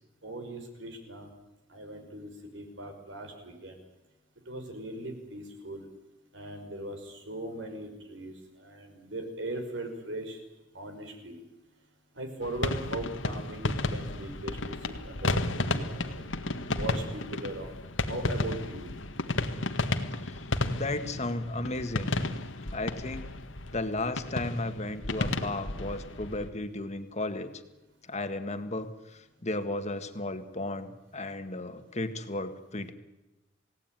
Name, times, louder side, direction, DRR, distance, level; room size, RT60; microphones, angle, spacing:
voice 1, 0.2-1.3 1.7-3.8 4.5-5.9 6.3-8.3 8.6-10.4 10.7-11.4 12.1-14.6 15.0-16.2 16.7-17.7 18.1-18.9, right 1 dB, 70° right, 5 dB, 5.6 m, -39 dB
sound 1, 12.4-26.5, left 2 dB, 80° left, 1.8 m, -33 dB
voice 2, 20.7-22.1 22.7-23.3 23.7-27.6 28.1-32.9, left 2 dB, 35° left, 8 dB, 2.0 m, -34 dB
28.0 x 18.0 x 9.4 m, 1.0 s
head